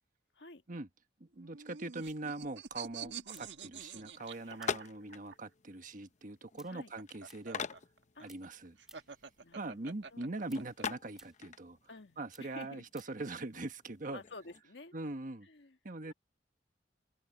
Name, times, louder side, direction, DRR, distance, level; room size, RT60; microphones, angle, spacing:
voice 1, 1.2-7.7 8.2-8.8 9.5-11.8 12.2-14.2 14.9-15.5 15.8-16.1, right 2 dB, 50° right, 1.3 m, -42 dB
sound 1, 1.3-5.4 6.6-10.8, right 7 dB, 90° right, 1.5 m, -47 dB
sound 2, 3.3-8.0 8.2-9.3 9.6-13.3, right 1 dB, 5° right, 3.1 m, -62 dB
sound 3, 4.1-14.6, left 6 dB, 40° left, 0.7 m, -46 dB
voice 2, 9.4-10.3 11.9-12.8 14.1-14.9 15.4-15.8 16.1-16.2, left 3 dB, 80° left, 1.8 m, -51 dB
head